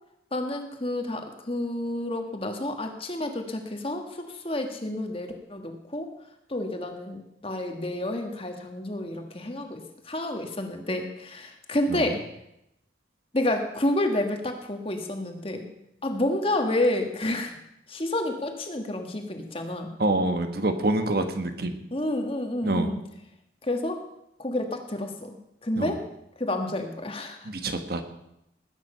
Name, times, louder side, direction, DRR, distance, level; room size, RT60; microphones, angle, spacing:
voice 1, 0.3-6.1 6.5-12.2 13.3-15.7 16.0-17.6 17.9-19.9 21.9-23.0 23.6-24.0 24.4-25.4 25.6-26.0 26.4-27.5, left 1 dB, 30° left, 5 dB, 1.7 m, -29 dB
voice 2, 20.0-21.8 22.6-22.9 25.8-26.0 27.4-28.0, right 2 dB, 55° right, 7 dB, 1.3 m, -26 dB
19.5 x 9.3 x 5.6 m, 0.82 s
head